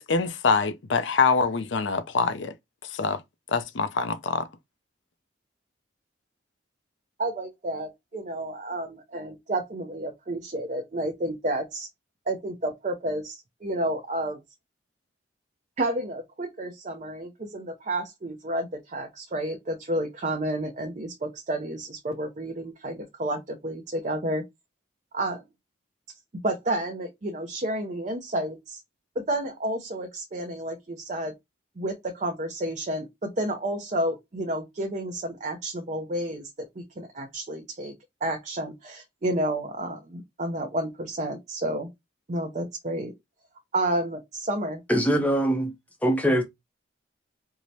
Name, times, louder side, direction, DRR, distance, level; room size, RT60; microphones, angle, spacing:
voice 1, 0.0-2.5 2.9-3.2 3.5-4.5, left 5 dB, 70° left, 0.5 m, -24 dB
voice 2, 7.2-11.9 12.3-14.4 15.8-24.4 25.1-25.4 26.4-28.8 29.2-31.3 31.8-37.9 38.2-41.9 42.3-43.1 43.7-44.8, right 1 dB, 40° right, 0.5 m, -30 dB
voice 3, 44.9-45.7 46.0-46.4, equal, 5° left, 0.5 m, -22 dB
4.5 x 2.1 x 2.7 m
head